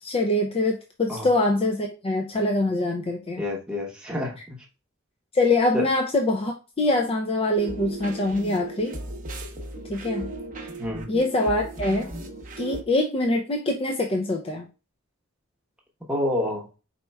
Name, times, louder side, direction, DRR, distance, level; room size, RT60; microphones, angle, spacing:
voice 1, 0.0-3.4 5.3-8.9 9.9-10.3 11.1-12.1 12.6-14.7, left 2 dB, 30° left, 2 dB, 0.4 m, -24 dB
voice 2, 3.4-4.4 5.7-5.8 10.8-11.1 16.1-16.7, left 1 dB, 5° right, -2 dB, 0.9 m, -27 dB
sound 1, 7.5-12.8, right 2 dB, 40° right, 0.7 m, -36 dB
4.4 x 4.1 x 2.2 m, 0.32 s
head